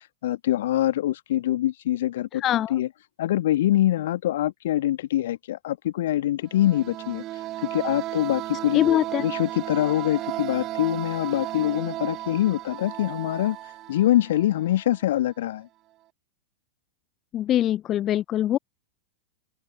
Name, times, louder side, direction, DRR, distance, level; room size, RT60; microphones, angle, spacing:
voice 1, 0.0-2.4 2.7-2.9 3.2-7.2 7.6-13.6 13.9-15.7, left 13 dB, 55° left, 1.9 m, -24 dB
voice 2, 2.3-2.8 8.7-9.3 17.3-18.6, left 12 dB, 30° left, 0.3 m, -23 dB
sound 1, 6.4-15.0, right 15 dB, 35° right, 2.9 m, -35 dB
figure-of-eight pair, 90°, 0 cm